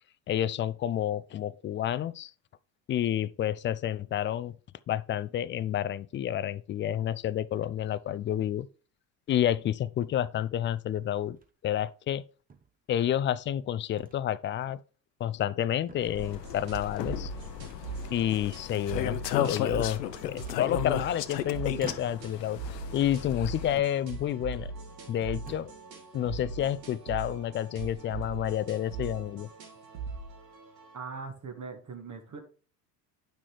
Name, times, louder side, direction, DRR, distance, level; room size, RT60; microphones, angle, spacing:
voice 1, 0.3-2.3 2.9-4.6 4.9-8.7 9.3-11.4 11.6-12.2 12.9-14.8 15.2-17.3 18.1-22.6 22.9-24.7 25.1-25.7 26.1-29.5, left 11 dB, 25° left, 0.4 m, -29 dB
sound 1, 11.3-11.7 12.5-13.2 14.0-14.2 14.6-14.8 15.3-15.6 15.9-16.6 17.6-18.4 18.7-19.5 20.5-21.3 21.8-22.4 23.0-23.7 24.0-24.3 24.9-25.0 25.3-25.9, right 4 dB, 15° right, 1.0 m, -50 dB
sound 2, 16.0-23.8, left 11 dB, 80° left, 0.7 m, -35 dB
sound 3, 16.2-31.0, right 4 dB, 85° right, 2.0 m, -41 dB
voice 2, 30.9-32.4, right 4 dB, 35° right, 1.8 m, -40 dB
9.5 x 6.1 x 3.2 m
hypercardioid pair, 70°, 49 cm